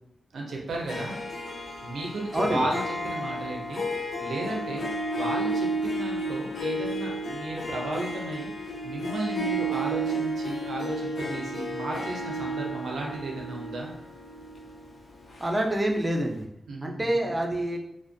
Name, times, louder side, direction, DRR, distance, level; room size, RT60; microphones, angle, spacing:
voice 1, 0.3-1.2 1.8-4.9 5.2-13.9 16.7-17.3, right 2 dB, 75° right, -1 dB, 0.4 m, -34 dB
Harp, 0.7-16.0, right 1 dB, 55° left, 0.4 m, -32 dB
voice 2, 15.4-16.5 16.8-17.8, right 1 dB, 15° right, 1 dB, 0.3 m, -26 dB
2.4 x 2.1 x 2.5 m, 0.80 s
wide cardioid pair, 175°, 0 cm